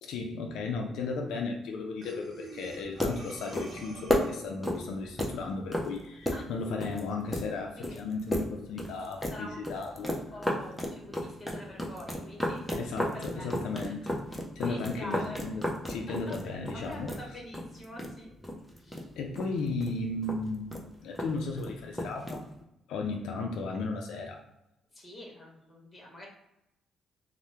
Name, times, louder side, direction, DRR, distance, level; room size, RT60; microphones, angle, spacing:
voice 1, 0.0-10.1 12.8-14.2 14.6-17.1 19.2-22.4 22.9-24.4, left 3 dB, 85° left, 1 dB, 0.4 m, -35 dB
Breathing, 2.0-4.6, right 2 dB, 50° right, 0.8 m, -47 dB
sound 1, 2.7-22.6, left 1 dB, 5° left, 0.6 m, -35 dB
voice 2, 9.3-9.6 9.9-13.5 13.9-14.1 14.6-15.4 16.7-18.3 18.7-19.1 23.7-23.8 24.9-26.3, equal, 25° left, -2 dB, 1.1 m, -45 dB
2.7 x 2.0 x 3.3 m, 0.88 s
cardioid pair, 90°, 0 cm